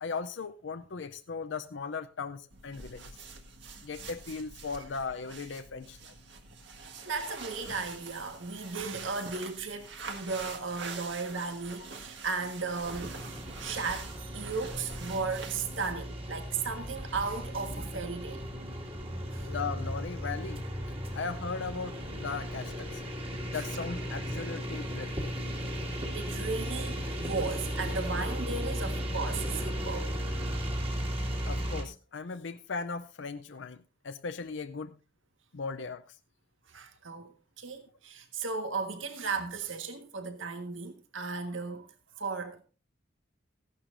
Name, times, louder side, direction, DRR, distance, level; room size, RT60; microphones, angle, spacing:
voice 1, 0.0-3.1 3.8-6.2 19.5-20.6 21.1-23.0 23.5-25.3 31.4-35.0 35.5-36.2, left 4 dB, 75° left, 0.6 m, -38 dB
sound 1, 2.5-16.1, right 4 dB, 65° right, 1.8 m, -45 dB
voice 2, 7.0-18.4 19.3-19.5 23.5-23.7 24.2-24.4 26.1-30.1 36.7-41.9 42.2-42.6, right 4 dB, 90° right, 1.5 m, -36 dB
sound 2, 12.8-31.8, equal, 30° right, 2.2 m, -36 dB
15.5 x 11.5 x 2.6 m
head